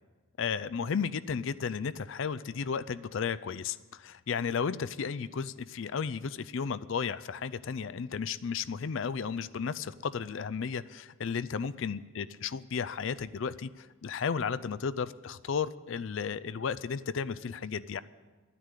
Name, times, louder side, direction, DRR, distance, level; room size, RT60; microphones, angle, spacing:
voice 1, 0.4-18.0, left 6 dB, 65° left, 15 dB, 0.4 m, -34 dB
12.5 x 9.7 x 8.2 m, 1.3 s
head